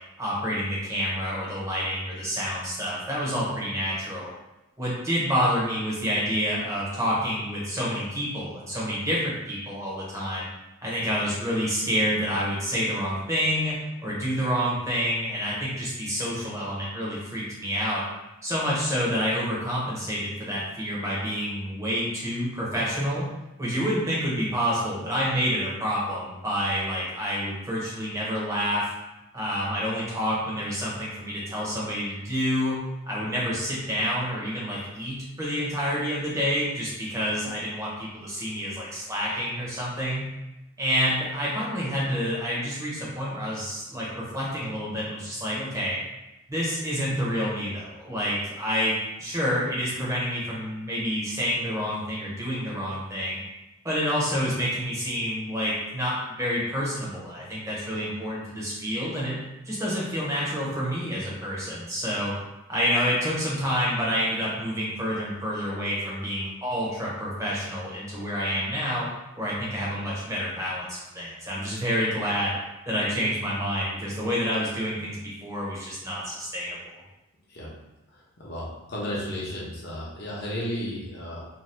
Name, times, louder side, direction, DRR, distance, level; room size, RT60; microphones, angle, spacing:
voice 1, 0.2-4.3 4.8-10.5 10.8-18.0 18.4-23.3 23.6-28.9 29.3-40.3 40.8-46.0 46.5-48.9 49.2-53.4 53.8-59.4 59.7-62.3 62.7-69.1 69.4-72.6 72.9-77.0, equal, 15° right, -6 dB, 0.7 m, -28 dB
voice 2, 78.1-81.5, equal, 50° left, -5 dB, 0.8 m, -34 dB
2.7 x 2.2 x 3.2 m, 0.96 s
head